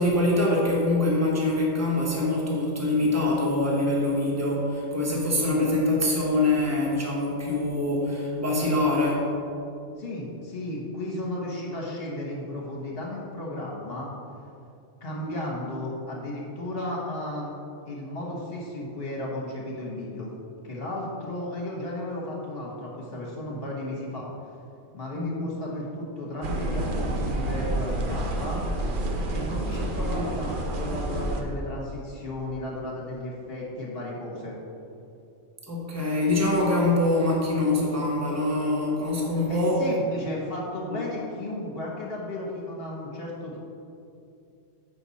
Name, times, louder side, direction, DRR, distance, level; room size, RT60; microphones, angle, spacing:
voice 1, 0.0-9.3 15.2-15.4 25.1-25.5 29.7-29.8 30.1-30.3 35.7-39.9 40.9-41.0, left 2 dB, 15° right, -3 dB, 1.1 m, -24 dB
voice 2, 10.0-14.1 15.0-17.6 17.8-20.3 20.6-24.3 24.9-28.6 29.3-34.6 39.5-43.6, left 1 dB, 50° left, -4 dB, 1.6 m, -34 dB
sound 1, 26.4-31.4, right 1 dB, 50° right, 0.8 m, -29 dB
7.9 x 5.7 x 4.2 m, 2.6 s
omnidirectional pair, 1.3 m